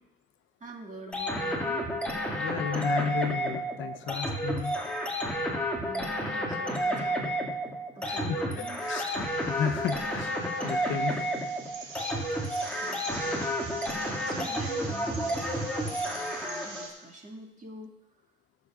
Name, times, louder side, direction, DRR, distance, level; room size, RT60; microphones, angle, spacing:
voice 1, 0.6-1.9 5.8-7.2 8.0-8.8 12.7-13.5 14.3-17.9, right 2 dB, 40° right, 0 dB, 2.1 m, -45 dB
sound 1, 1.1-16.9, equal, 5° left, 2.1 m, -31 dB
voice 2, 2.4-4.7 8.0-11.3, left 8 dB, 75° left, 9 dB, 0.7 m, -33 dB
sound 2, 8.8-16.9, right 3 dB, 75° right, 2.6 m, -45 dB
18.5 x 7.1 x 2.5 m, 0.88 s
cardioid pair, 90°, 20 cm